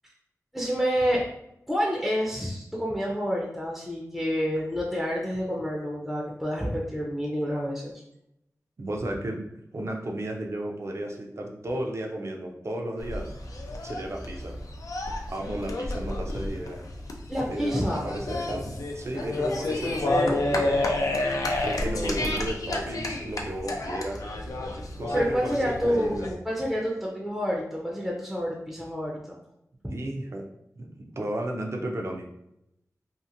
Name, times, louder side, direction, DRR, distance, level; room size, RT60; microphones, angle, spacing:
voice 1, 0.5-1.2 1.7-7.9 17.3-18.4 21.8-22.2 25.1-29.4, equal, 5° right, -3 dB, 0.5 m, -28 dB
voice 2, 8.8-13.3 13.8-14.6 15.3-16.8 17.5-20.8 21.6-24.2 25.0-26.3 29.9-30.5 30.8-32.3, right 1 dB, 50° right, 1 dB, 0.5 m, -34 dB
sound 1, 13.0-26.3, left 2 dB, 80° left, 0.4 m, -30 dB
2.8 x 2.5 x 2.5 m, 0.81 s
wide cardioid pair, 80°, 6 cm